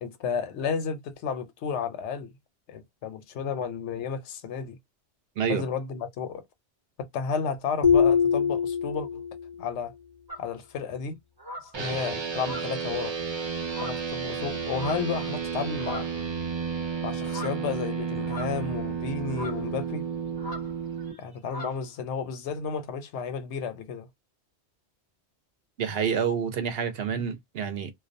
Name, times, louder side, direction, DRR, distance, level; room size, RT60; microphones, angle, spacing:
voice 1, 0.0-2.3 2.7-4.8 5.5-6.4 7.0-9.2 9.6-9.9 10.4-11.2 11.6-13.2 13.8-16.1 17.0-20.0 21.2-24.1, left 6 dB, 85° left, 0.9 m, -32 dB
sound 1, 7.8-9.5, left 6 dB, 50° left, 0.4 m, -22 dB
sound 2, 10.3-10.5 11.4-11.8 12.4-13.0 13.7-14.1 14.7-15.2 15.8-16.2 17.3-17.6 18.2-18.8 19.3-19.6 20.4-20.7 21.0-21.2 21.4-21.8, left 1 dB, 25° right, 0.7 m, -40 dB
sound 3, 11.7-21.1, right 6 dB, 45° right, 0.3 m, -32 dB
voice 2, 25.8-27.9, right 7 dB, 65° right, 0.8 m, -28 dB
2.3 x 2.2 x 2.5 m
omnidirectional pair, 1.1 m